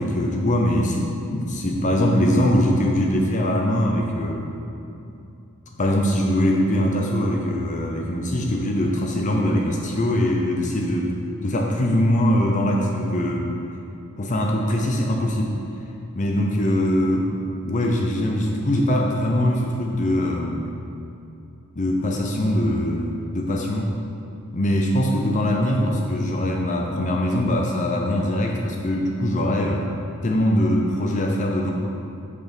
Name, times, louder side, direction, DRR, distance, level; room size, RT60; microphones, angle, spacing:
voice 1, 0.0-4.4 5.8-11.2 11.4-13.5 14.2-15.6 16.2-20.7 21.8-23.9 24.5-29.9 30.2-31.7, left 1 dB, 35° left, 0 dB, 0.6 m, -22 dB
6.6 x 5.8 x 5.3 m, 2.7 s
head